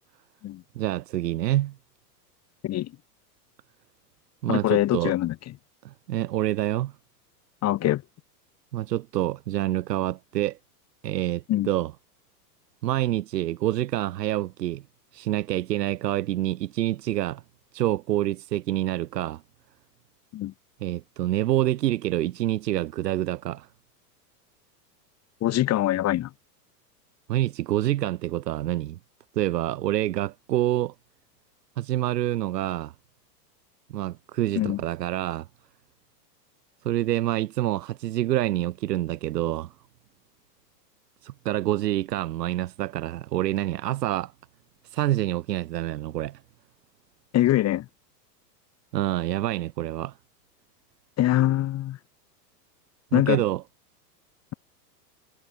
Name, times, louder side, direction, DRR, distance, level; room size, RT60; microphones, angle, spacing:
voice 1, 0.8-1.7 4.4-5.1 5.8-6.9 8.7-10.6 11.0-11.9 12.8-14.8 15.1-17.4 17.7-19.4 20.8-23.7 27.3-29.0 29.4-30.9 31.8-32.9 33.9-35.5 36.8-39.7 41.2-44.3 44.9-46.4 48.9-50.2 53.1-53.6, right 14 dB, 75° right, 7.5 m, -27 dB
voice 2, 4.5-5.4 7.6-8.0 11.5-11.7 20.3-20.5 25.4-26.3 34.6-34.8 47.3-47.9 51.2-52.0 53.1-53.4, left 14 dB, 30° left, 2.3 m, -23 dB
hypercardioid pair, 125°, 49 cm